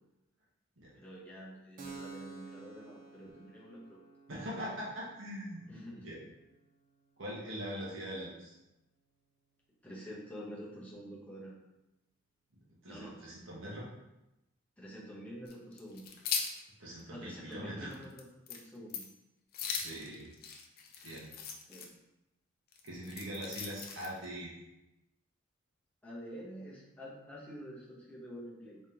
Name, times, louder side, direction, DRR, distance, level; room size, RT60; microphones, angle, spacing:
voice 1, 0.9-4.0 5.7-6.1 9.8-11.5 12.9-13.2 14.8-16.1 17.1-19.1 21.0-21.2 21.7-21.9 26.0-28.8, equal, 5° left, -6 dB, 0.9 m, -48 dB
Keyboard (musical), 1.8-9.1, right 4 dB, 40° right, 0.5 m, -54 dB
voice 2, 4.3-5.7 6.0-6.2 7.2-8.5 12.5-13.9 16.8-18.0 19.8-20.3 21.0-21.3 22.8-24.5, equal, 70° right, -5 dB, 1.3 m, -42 dB
sound 1, 15.5-16.6 17.0-17.1 17.5-17.6 17.9-18.2 18.5-18.6 18.9-19.2 19.5-21.9 22.7-24.3, left 6 dB, 50° left, 0.5 m, -39 dB
3.5 x 3.4 x 2.9 m, 0.94 s
head